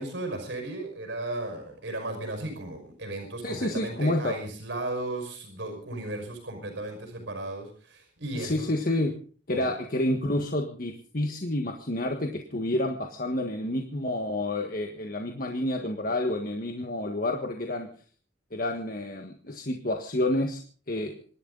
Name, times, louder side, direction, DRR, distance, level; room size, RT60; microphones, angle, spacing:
voice 1, 0.0-9.0 9.5-9.7, right 2 dB, 70° right, 5 dB, 5.5 m, -35 dB
voice 2, 3.4-4.3 8.3-9.1 9.5-17.9 18.5-20.6 20.9-21.1, left 1 dB, 45° left, 3 dB, 1.6 m, -29 dB
26.0 x 11.5 x 4.0 m, 0.42 s
head